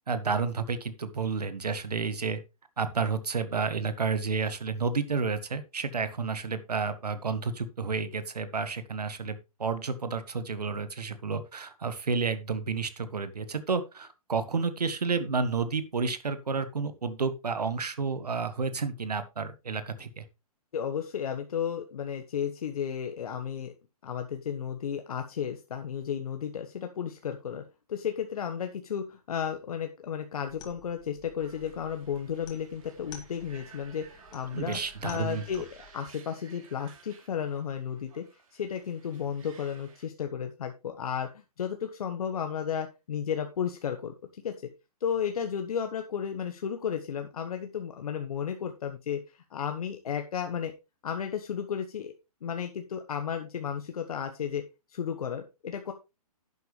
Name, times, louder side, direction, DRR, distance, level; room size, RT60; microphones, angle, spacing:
voice 1, 0.1-2.4 2.8-20.2 34.5-35.4, right 5 dB, 85° right, 12 dB, 1.6 m, -31 dB
voice 2, 20.7-23.7 24.0-27.6 27.9-38.2 38.5-44.7 45.0-50.7 51.0-52.1 52.4-54.6 54.9-55.9, left 8 dB, 70° left, 6 dB, 1.3 m, -33 dB
sound 1, 30.5-35.9, left 5 dB, 20° left, 2.3 m, -53 dB
sound 2, 31.4-40.1, right 6 dB, 60° right, 3.4 m, -55 dB
11.0 x 8.4 x 3.2 m, 0.26 s
hypercardioid pair, 130°, 20 cm